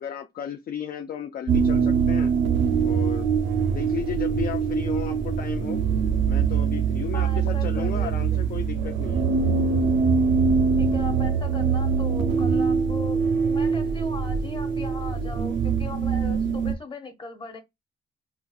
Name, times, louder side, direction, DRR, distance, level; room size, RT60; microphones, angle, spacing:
voice 1, 0.0-2.3 2.8-3.3 3.7-5.8 6.3-9.3, left 8 dB, 50° left, 0.4 m, -34 dB
sound 1, 1.5-16.7, right 6 dB, 75° right, 0.5 m, -23 dB
voice 2, 7.1-8.2 10.8-17.6, left 2 dB, 25° left, 1.1 m, -38 dB
4.0 x 2.4 x 2.3 m
cardioid pair, 90°, 20 cm